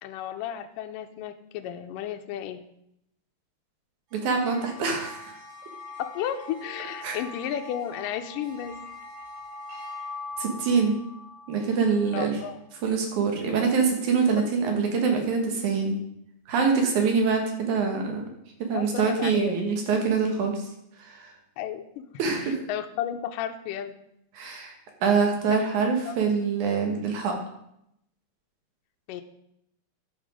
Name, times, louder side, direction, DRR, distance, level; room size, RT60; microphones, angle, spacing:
voice 1, 0.0-2.6 6.0-8.8 12.1-12.6 14.4-14.5 18.7-19.7 21.6-23.9 25.5-25.7 26.1-26.2 29.1-29.2, left 10 dB, 85° left, 6 dB, 1.9 m, -33 dB
sound 1, 4.1-12.7, left 2 dB, 80° right, 6.1 m, -43 dB
voice 2, 4.2-5.4 7.0-7.2 10.4-11.0 11.5-12.4 12.8-16.0 16.5-18.2 18.7-20.6 21.0-21.3 22.2-22.6 24.3-24.7 25.0-27.3, right 5 dB, 60° right, 3 dB, 2.5 m, -24 dB
12.0 x 6.2 x 5.0 m, 0.78 s
omnidirectional pair, 4.6 m